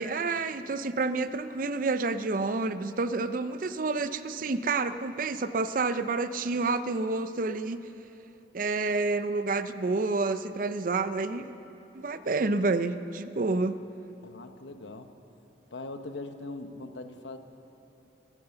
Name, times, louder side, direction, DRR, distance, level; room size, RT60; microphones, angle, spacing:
voice 1, 0.0-7.8 8.5-11.5 11.9-13.8, right 3 dB, 50° right, 12 dB, 0.5 m, -29 dB
voice 2, 14.2-15.1 15.7-17.4, left 2 dB, 80° left, 8 dB, 0.9 m, -41 dB
15.0 x 12.5 x 6.9 m, 2.9 s
head